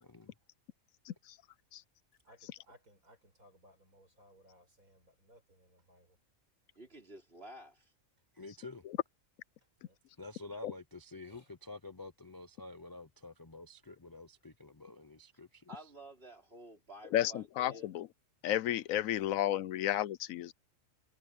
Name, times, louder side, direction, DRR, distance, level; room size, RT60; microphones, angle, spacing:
voice 1, 0.0-0.3 8.3-8.8 10.2-15.9, left 2 dB, 30° left, 0.4 m, -49 dB
voice 2, 2.2-6.2 9.8-10.0 11.2-11.5, equal, 80° right, 7.7 m, -63 dB
voice 3, 6.8-7.9 15.7-17.9 19.1-19.2, right 1 dB, 45° right, 5.1 m, -52 dB
voice 4, 17.1-18.1 18.4-20.5, left 12 dB, 80° left, 1.0 m, -32 dB
omnidirectional pair, 1.4 m